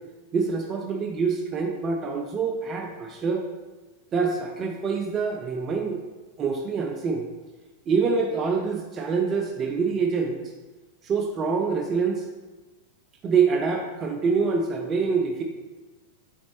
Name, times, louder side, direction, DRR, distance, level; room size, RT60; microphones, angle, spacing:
voice 1, 0.3-3.5 4.1-6.0 6.4-7.3 7.9-10.4 11.0-12.3 13.2-15.4, right 5 dB, 30° right, 3 dB, 0.4 m, -25 dB
4.1 x 4.0 x 2.9 m, 1.2 s
figure-of-eight pair, 90°, 0 cm